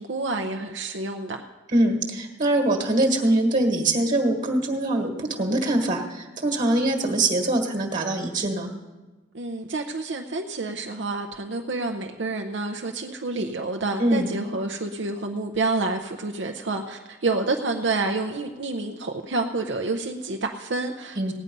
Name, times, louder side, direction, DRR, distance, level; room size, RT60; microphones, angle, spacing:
voice 1, 0.0-1.5 9.3-21.3, right 3 dB, 65° right, 3 dB, 0.7 m, -28 dB
voice 2, 1.7-8.7 14.0-14.3 21.2-21.3, right 1 dB, 40° right, 3 dB, 1.6 m, -23 dB
16.5 x 9.8 x 5.3 m, 1.2 s
head